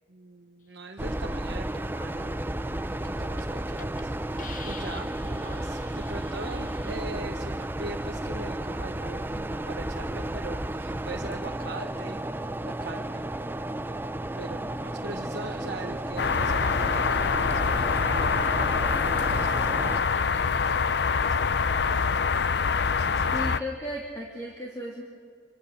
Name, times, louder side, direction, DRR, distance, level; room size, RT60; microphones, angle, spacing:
voice 1, 0.1-2.4 2.7-12.3 12.6-13.3 14.4-20.8 21.1-21.6 21.9-22.1 22.8-23.6, right 2 dB, 65° right, 2 dB, 1.0 m, -42 dB
sound 1, 1.0-20.0, right 1 dB, 10° right, 0.6 m, -33 dB
Hiss, 3.4-3.5 3.8-4.0 4.4-7.0, left 5 dB, 45° left, 1.5 m, -46 dB
sound 2, 16.2-23.6, left 5 dB, 65° left, 0.6 m, -25 dB
voice 2, 23.3-25.0, equal, 20° left, -2 dB, 2.7 m, -35 dB
26.5 x 25.5 x 6.5 m, 2.1 s
head